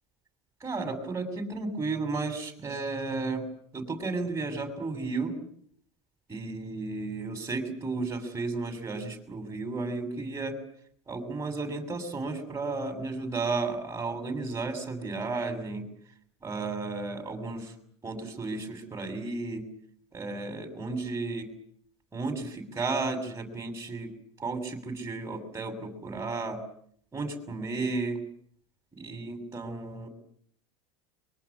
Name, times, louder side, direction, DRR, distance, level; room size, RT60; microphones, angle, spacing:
voice 1, 0.6-3.4 3.7-5.4 6.3-10.6 11.1-15.9 16.4-17.7 18.0-19.7 20.1-21.5 22.1-24.1 24.4-26.6 27.1-28.2 28.9-30.1, right 3 dB, 20° right, 6 dB, 6.8 m, -33 dB
23.5 x 23.0 x 8.6 m, 0.64 s
hypercardioid pair, 95°, 15 cm